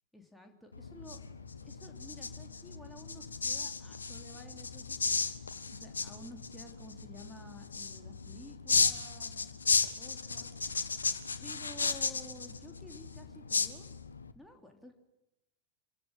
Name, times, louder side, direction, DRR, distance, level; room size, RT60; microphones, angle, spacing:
voice 1, 0.1-1.2 1.6-5.2 5.7-10.5 11.4-13.9 14.3-14.9, equal, ahead, 2 dB, 3.4 m, -52 dB
sound 1, 0.7-14.3, left 4 dB, 75° left, 1.5 m, -35 dB
27.0 x 16.5 x 9.8 m, 0.91 s
figure-of-eight pair, 90°, 0 cm